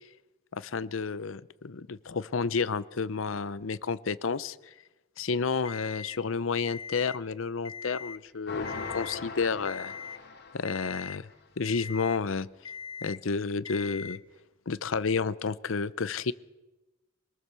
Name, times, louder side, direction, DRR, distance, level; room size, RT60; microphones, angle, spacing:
voice 1, 0.5-4.6 5.2-9.9 10.5-11.3 11.6-12.5 13.0-14.2 14.7-16.3, left 5 dB, 75° left, 17 dB, 0.7 m, -31 dB
Alarm, 5.6-6.2 6.6-7.2 7.6-8.2 8.6-9.2 9.6-10.2 10.6-11.2 11.6-12.2 12.6-13.2 13.6-14.2, left 6 dB, 20° left, 0.9 m, -41 dB
sound 1, 8.5-11.2, left 4 dB, 55° left, 2.7 m, -40 dB
25.0 x 19.0 x 6.9 m, 1.1 s
head